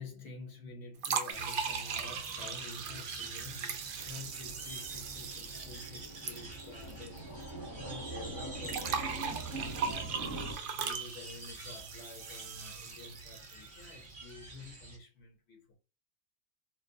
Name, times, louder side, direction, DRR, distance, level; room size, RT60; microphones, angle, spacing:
voice 1, 0.0-7.3 7.7-10.2 10.7-15.8, left 3 dB, 60° left, 1.0 m, -49 dB
sound 1, 1.0-7.2 7.4-7.5 8.6-13.7, right 6 dB, 60° right, 0.6 m, -39 dB
sound 2, 1.3-15.0, right 3 dB, 85° right, 2.1 m, -48 dB
sound 3, 4.0-10.6, right 2 dB, 20° left, 0.7 m, -44 dB
4.5 x 2.1 x 2.6 m
omnidirectional pair, 1.4 m